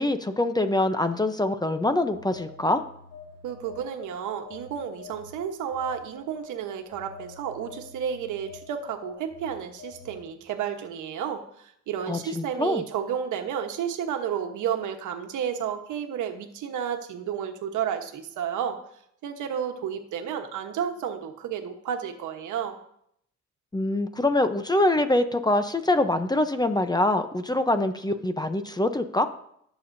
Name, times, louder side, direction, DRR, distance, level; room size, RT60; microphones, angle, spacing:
voice 1, 0.0-2.8 12.1-12.8 23.7-29.3, left 2 dB, 15° left, 9 dB, 0.7 m, -24 dB
Telephone, 2.1-4.1 4.4-10.3, left 5 dB, 35° left, 3.1 m, -47 dB
voice 2, 3.4-18.8 19.2-22.8, right 8 dB, 80° right, 5 dB, 1.2 m, -31 dB
17.5 x 7.0 x 2.7 m, 0.71 s
cardioid pair, 90°, 30 cm